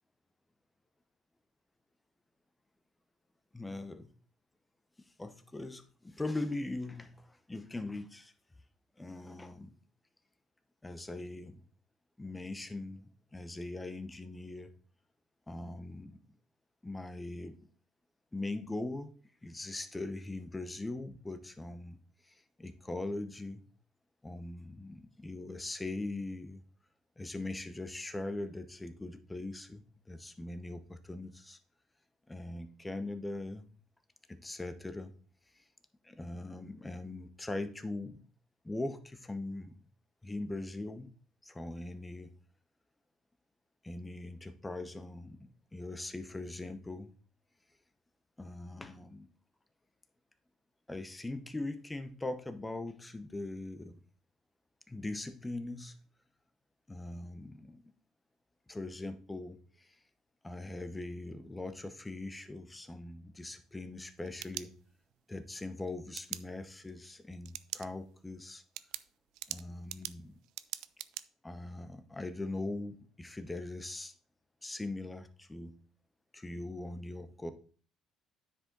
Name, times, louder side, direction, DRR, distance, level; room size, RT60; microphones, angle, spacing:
voice 1, 3.5-4.1 5.2-8.3 9.0-9.7 10.8-11.6 12.2-14.7 15.5-16.2 16.8-17.6 18.3-19.1 19.4-23.6 24.2-26.6 27.2-31.6 32.3-33.7 34.3-35.1 35.5-35.6 36.0-38.2 38.6-39.8 40.2-41.1 41.4-42.3 43.8-47.1 48.4-49.3 50.9-54.0 54.9-56.0 56.9-57.8 58.7-60.0 60.4-64.7 65.3-68.6 69.5-70.4 71.4-74.1 74.6-75.8 76.3-77.5, left 2 dB, 10° left, 0.8 m, -41 dB
sound 1, 64.0-65.2 66.1-66.4 67.4-67.9 68.2-68.3 68.7-71.2, right 15 dB, 80° right, 0.4 m, -42 dB
9.5 x 5.1 x 3.8 m
cardioid pair, 130°, 0 cm